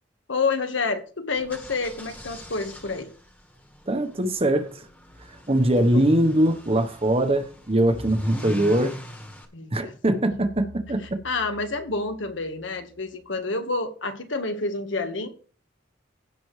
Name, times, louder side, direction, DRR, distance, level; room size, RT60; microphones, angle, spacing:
voice 1, 0.3-3.1 5.9-6.0 9.5-9.7 10.4-10.5 11.2-15.3, left 3 dB, 80° left, 1.6 m, -28 dB
sound 1, 1.4-9.5, equal, 10° left, 1.6 m, -41 dB
voice 2, 3.9-4.9 5.5-9.0 9.7-11.2, right 1 dB, 30° right, 1.1 m, -22 dB
sound 2, 10.3-13.4, equal, 55° left, 3.4 m, -49 dB
16.5 x 6.1 x 3.3 m
head